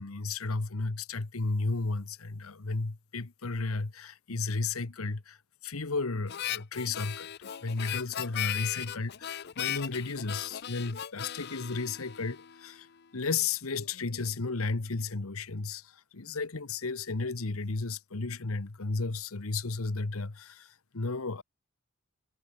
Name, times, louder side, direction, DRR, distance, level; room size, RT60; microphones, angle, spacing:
voice 1, 0.0-5.4 5.6-12.9 13.1-21.4, left 3 dB, 85° left, 1.2 m, -33 dB
Harmonica, 6.3-12.8, left 11 dB, 50° left, 0.5 m, -37 dB
head